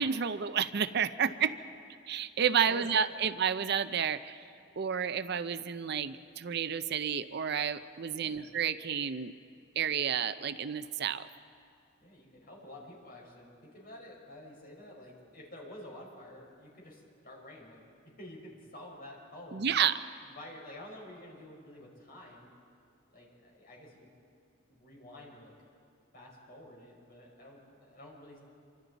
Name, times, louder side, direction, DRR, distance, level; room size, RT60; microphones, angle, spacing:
voice 1, 0.0-1.5 2.1-4.4 4.8-9.3 9.8-11.3 19.5-20.0, right 7 dB, 55° right, 12 dB, 0.5 m, -30 dB
voice 2, 2.6-3.2 8.1-8.4 12.0-19.7 20.2-22.5 23.1-24.1 24.7-25.5 26.1-28.4, left 1 dB, 45° left, -2 dB, 5.1 m, -50 dB
26.5 x 25.0 x 4.0 m, 2.5 s
head